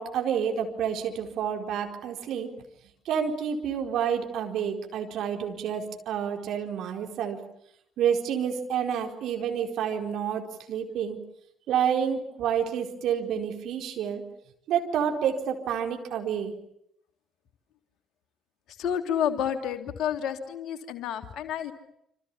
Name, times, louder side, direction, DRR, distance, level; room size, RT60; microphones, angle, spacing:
voice 1, 0.0-2.5 3.0-7.4 8.0-11.2 11.7-14.2 14.7-16.5, right 8 dB, 55° right, 3 dB, 4.4 m, -29 dB
voice 2, 18.8-21.7, left 9 dB, 55° left, 7 dB, 3.0 m, -30 dB
27.5 x 26.5 x 7.2 m, 0.75 s
figure-of-eight pair, 45°, 0 cm